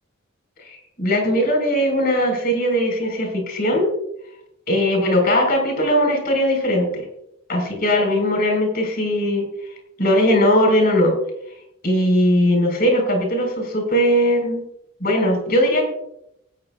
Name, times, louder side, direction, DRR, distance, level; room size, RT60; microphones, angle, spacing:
voice 1, 0.6-3.9 4.7-7.0 7.5-9.5 10.0-11.1 11.8-14.6 15.0-15.8, equal, 50° left, 3 dB, 4.5 m, -19 dB
19.0 x 9.5 x 2.4 m, 0.80 s
head